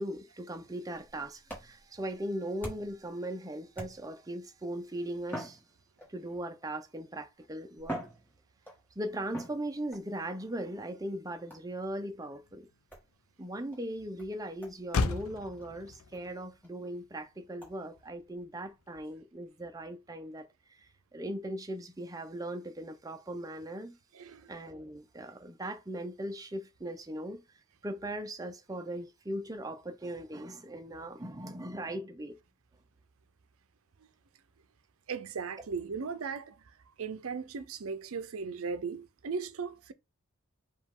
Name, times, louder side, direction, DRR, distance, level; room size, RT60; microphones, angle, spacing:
voice 1, 0.0-5.6 6.1-8.0 9.0-12.7 13.4-24.0 24.5-27.4 27.8-32.4, right 1 dB, 15° right, 0.5 m, -39 dB
sound 1, 1.0-3.1 3.7-4.3 5.2-6.3 7.2-7.3 7.8-8.9 9.3-10.1 11.5-11.8 12.9-13.1 13.7-13.8 14.2-14.3 14.6-14.8 15.1-15.2 15.6-15.7 16.1-16.2 16.6-16.7 17.6-17.7, right 1 dB, 10° left, 1.4 m, -44 dB
Motor vehicle (road), 10.8-19.5, left 3 dB, 80° left, 0.5 m, -40 dB
voice 2, 24.1-24.5 35.1-36.6 37.0-39.9, right 5 dB, 70° right, 0.5 m, -37 dB
4.9 x 2.4 x 3.6 m
head